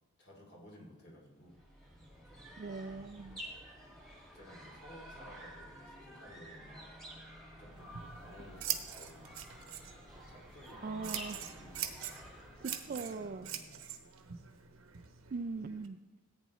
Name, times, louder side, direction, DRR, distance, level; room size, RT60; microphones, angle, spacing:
voice 1, 0.2-2.0 2.3-2.5 4.3-6.9 7.6-14.4, left 1 dB, 50° left, -2 dB, 2.8 m, -56 dB
sound 1, 1.4-13.0, equal, ahead, 1.9 m, -51 dB
voice 2, 2.6-3.4 10.8-11.4 12.6-13.5 15.3-16.0, right 4 dB, 40° right, 11 dB, 0.3 m, -40 dB
Scissors, 7.7-15.9, right 10 dB, 65° right, 0.9 m, -44 dB
14.5 x 8.9 x 3.2 m, 1.2 s
head